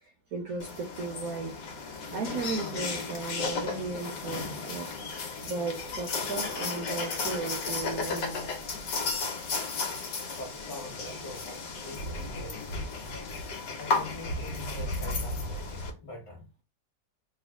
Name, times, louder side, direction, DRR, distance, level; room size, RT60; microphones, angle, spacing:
voice 1, 0.3-1.5 2.1-4.9 5.4-8.5 11.1-11.2, right 4 dB, 65° right, 1.0 m, -35 dB
sound 1, 0.6-15.9, left 3 dB, 80° left, 1.5 m, -34 dB
voice 2, 10.3-12.9 13.8-16.5, left 2 dB, 30° left, 1.6 m, -44 dB
3.4 x 2.4 x 3.5 m
omnidirectional pair, 1.9 m